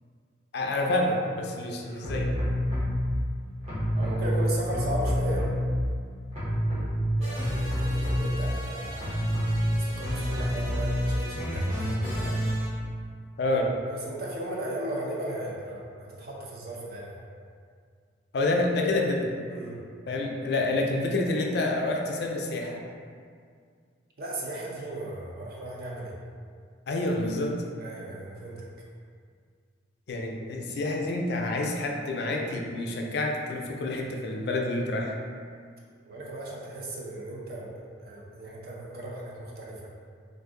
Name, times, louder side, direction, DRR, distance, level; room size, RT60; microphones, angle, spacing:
voice 1, 0.5-2.3 13.4-13.7 18.3-19.3 20.1-22.8 26.9-27.5 30.1-35.2, left 2 dB, 60° left, 1 dB, 0.4 m, -28 dB
voice 2, 1.8-2.1 3.9-5.4 7.2-9.2 9.7-12.4 13.9-17.2 19.5-19.8 24.2-26.2 27.8-28.7 36.0-39.9, right 1 dB, 50° right, -4 dB, 0.6 m, -36 dB
sound 1, 2.0-3.2 3.6-6.1 6.3-12.7, equal, 35° right, 1.0 m, -28 dB
2.6 x 2.6 x 3.6 m, 2.1 s
head